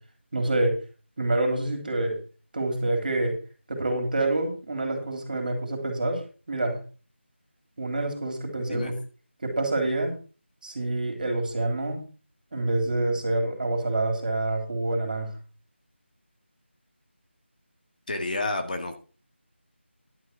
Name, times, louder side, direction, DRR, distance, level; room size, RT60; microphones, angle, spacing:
voice 1, 0.3-0.7 1.2-2.2 2.5-3.4 3.7-6.2 6.5-6.8 7.8-8.9 9.4-10.2 10.6-12.0 12.5-15.3, right 2 dB, 45° right, 4 dB, 3.5 m, -27 dB
voice 2, 18.1-18.9, left 2 dB, 40° left, 5 dB, 1.8 m, -30 dB
11.5 x 6.4 x 6.1 m, 0.36 s
figure-of-eight pair, 170°, 7 cm